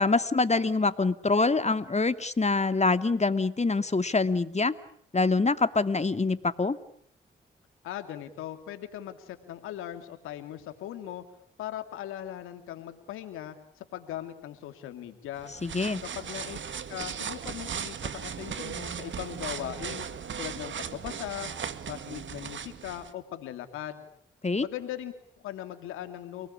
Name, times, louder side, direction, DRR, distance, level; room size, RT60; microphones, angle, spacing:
voice 1, 0.0-4.7 5.1-6.8 15.6-16.0 24.4-24.7, left 3 dB, 35° left, 10 dB, 2.5 m, -25 dB
voice 2, 7.8-11.2 11.6-15.5 16.1-16.6 16.9-20.1 20.4-21.5 21.9-24.0 24.6-26.5, left 11 dB, 90° left, 8 dB, 2.8 m, -39 dB
sound 1, 15.4-23.1, right 7 dB, 70° right, 2.0 m, -37 dB
30.0 x 19.5 x 10.0 m, 0.65 s
supercardioid pair, 40°, 21 cm